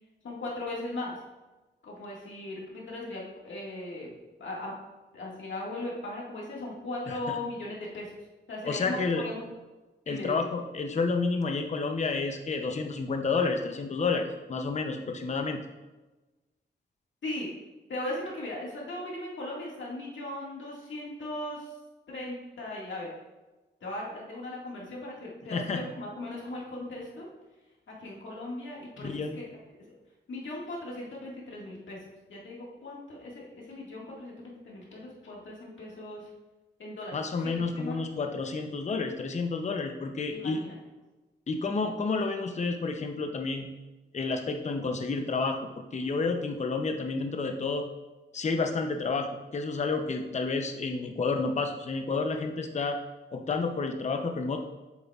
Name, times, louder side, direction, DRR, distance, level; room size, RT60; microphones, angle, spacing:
voice 1, 0.2-1.2 1.8-4.1 4.4-4.7 5.1-8.1 8.5-9.5 10.1-10.4 17.2-17.5 17.9-21.7 22.1-23.1 23.8-27.3 27.9-29.6 29.9-30.0 30.3-32.0 32.3-36.3 36.8-38.1 40.3-40.8, left 1 dB, 80° left, -4 dB, 1.9 m, -38 dB
voice 2, 8.6-9.2 10.1-15.6 25.5-25.8 29.0-29.4 37.1-40.6 41.5-43.7 44.1-45.6 45.9-47.9 48.3-53.0 53.3-54.6, left 4 dB, 35° left, 4 dB, 0.6 m, -30 dB
7.8 x 7.0 x 2.4 m, 1.2 s
wide cardioid pair, 130°, 19 cm